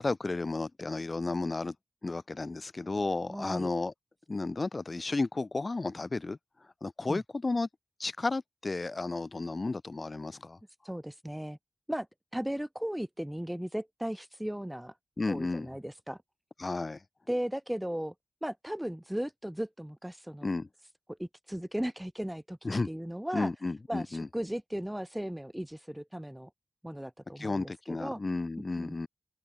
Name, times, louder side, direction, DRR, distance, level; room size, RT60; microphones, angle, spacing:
voice 1, 0.0-1.7 2.0-3.9 4.3-6.4 6.8-7.7 8.0-10.6 15.2-15.7 16.6-17.0 20.4-20.7 22.6-22.9 23.3-24.3 27.4-29.1, left 3 dB, 45° left, 1.6 m, -33 dB
voice 2, 3.3-3.7 7.1-7.2 10.8-11.6 11.9-12.1 12.3-14.9 15.3-16.2 17.3-18.1 18.4-20.5 21.2-23.5 23.9-26.5 26.8-28.2 28.8-29.0, equal, 5° right, 1.8 m, -36 dB
open air
cardioid pair, 50°, 0 cm